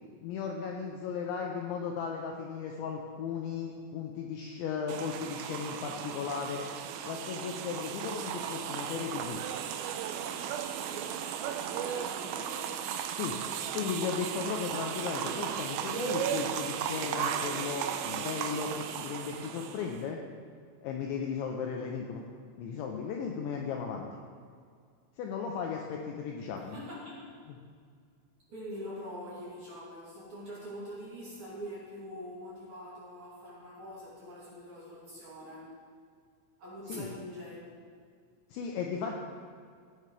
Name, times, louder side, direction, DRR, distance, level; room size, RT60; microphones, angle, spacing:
voice 1, 0.2-6.7 7.0-9.4 13.2-13.4 13.7-20.2 20.8-22.2 22.6-24.1 25.2-26.8 36.9-37.1 38.5-39.1, left 6 dB, 80° left, 1 dB, 2.7 m, -36 dB
sound 1, 4.9-20.0, right 9 dB, 85° right, 3.3 m, -35 dB
voice 2, 10.9-12.8 26.7-27.3 28.5-35.7 36.6-37.7, equal, 40° right, -8 dB, 3.2 m, -44 dB
16.0 x 8.8 x 3.3 m, 2.1 s
omnidirectional pair, 5.9 m